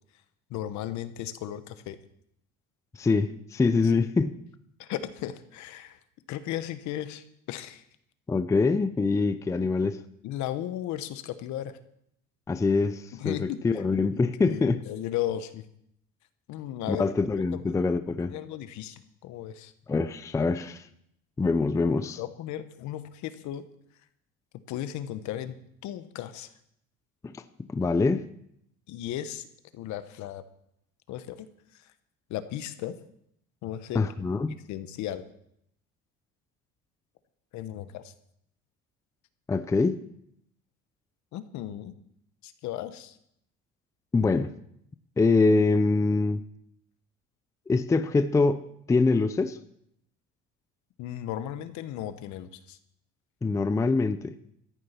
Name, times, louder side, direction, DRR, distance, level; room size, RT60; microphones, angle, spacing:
voice 1, 0.5-2.0 3.8-3.9 4.8-6.0 6.3-7.8 9.5-9.7 10.2-11.8 13.2-13.8 14.1-15.6 16.5-17.1 17.5-17.7 18.2-19.7 22.2-23.6 24.7-25.5 25.8-26.5 28.9-29.5 29.7-30.4 31.1-31.5 32.3-33.0 33.6-34.1 34.7-35.2 37.5-38.1 41.3-41.9 42.4-43.2 51.0-52.8, left 12 dB, 65° left, 12 dB, 1.2 m, -35 dB
voice 2, 3.0-4.3 8.3-10.0 12.5-14.8 16.9-18.3 19.9-20.8 21.4-22.2 27.2-27.4 27.7-28.2 33.9-34.5 39.5-40.0 44.1-44.5 45.2-46.4 47.7-48.6 48.9-49.6 53.4-54.4, left 3 dB, 10° left, 12 dB, 0.5 m, -24 dB
13.5 x 10.0 x 5.8 m, 0.72 s
cardioid pair, 140°, 31 cm